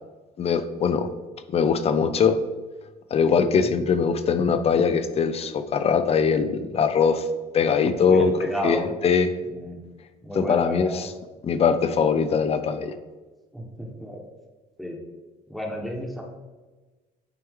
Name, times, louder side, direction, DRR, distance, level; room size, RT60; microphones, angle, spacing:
voice 1, 0.4-1.1 1.5-2.4 3.1-7.3 7.5-8.3 8.6-9.3 10.3-11.1 11.4-12.9, left 6 dB, 35° left, 11 dB, 0.5 m, -21 dB
voice 2, 8.1-8.9 9.5-9.9 10.2-11.0 13.5-14.2 14.8-15.0 15.5-16.2, equal, ahead, 0 dB, 1.2 m, -32 dB
9.0 x 3.1 x 3.6 m, 1.2 s
cardioid pair, 110°, 17 cm